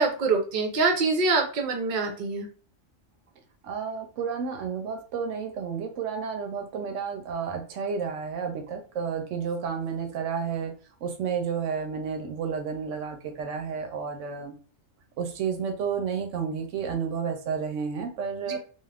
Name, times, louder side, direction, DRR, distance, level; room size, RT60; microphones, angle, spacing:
voice 1, 0.0-2.5 18.5-18.6, right 4 dB, 50° right, 3 dB, 0.7 m, -25 dB
voice 2, 3.6-10.7 11.0-14.5 15.2-18.6, right 6 dB, 75° right, 5 dB, 0.9 m, -31 dB
2.4 x 2.3 x 3.2 m, 0.39 s
omnidirectional pair, 1.3 m